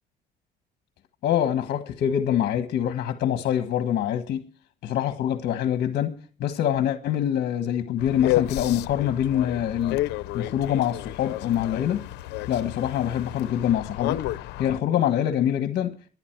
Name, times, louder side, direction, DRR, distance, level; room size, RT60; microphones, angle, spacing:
voice 1, 1.2-4.4 4.8-10.0 10.3-12.0 12.5-14.2 14.6-15.9, left 10 dB, 65° left, 1.5 m, -25 dB
sound 1, 8.0-14.8, left 16 dB, 85° left, 0.8 m, -31 dB
23.5 x 9.6 x 4.7 m
cardioid pair, 110°, 17 cm